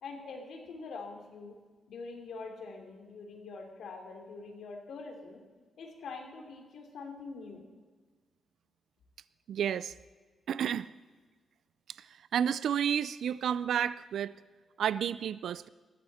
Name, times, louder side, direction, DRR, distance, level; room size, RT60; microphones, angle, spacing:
voice 1, 0.0-1.6 1.9-5.4 5.8-7.6, left 4 dB, 75° left, 3 dB, 3.0 m, -44 dB
voice 2, 9.5-9.9 10.5-10.9 12.3-14.4 14.8-15.7, right 8 dB, 75° right, 17 dB, 0.4 m, -31 dB
20.0 x 14.5 x 4.3 m, 1.4 s
cardioid pair, 120°, 0 cm